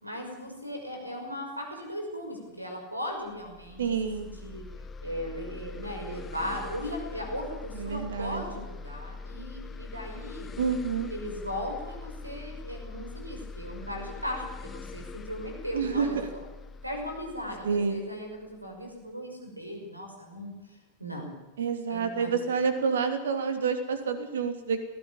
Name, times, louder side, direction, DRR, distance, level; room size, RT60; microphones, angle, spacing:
voice 1, 0.0-3.8 4.4-4.6 5.0-10.5 11.1-16.2 16.8-21.3 21.9-22.3, equal, 85° right, 3 dB, 6.0 m, -37 dB
sound 1, 3.3-18.8, left 3 dB, 20° left, 0.9 m, -43 dB
voice 2, 3.8-4.3 7.7-8.4 10.6-11.1 15.7-16.3 17.6-18.0 21.6-24.8, right 5 dB, 65° right, 8 dB, 2.8 m, -28 dB
19.5 x 16.0 x 8.9 m, 1.0 s
figure-of-eight pair, 90°, 0 cm